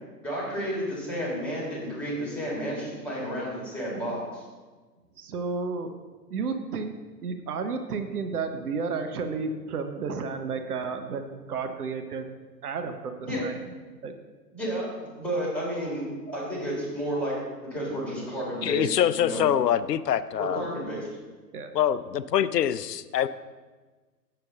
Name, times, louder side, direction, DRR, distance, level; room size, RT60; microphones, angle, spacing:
voice 1, 0.2-4.4 13.2-13.4 14.5-17.3 17.6-19.5 20.4-21.1, equal, ahead, -5 dB, 1.8 m, -31 dB
voice 2, 5.2-5.9 6.3-7.0 7.2-12.3 12.6-13.6 14.0-14.1 21.5-21.7, right 4 dB, 65° right, 7 dB, 0.8 m, -32 dB
voice 3, 18.6-20.6 21.7-23.3, left 10 dB, 75° left, 14 dB, 0.5 m, -24 dB
7.8 x 6.7 x 3.6 m, 1.3 s
figure-of-eight pair, 130°, 49 cm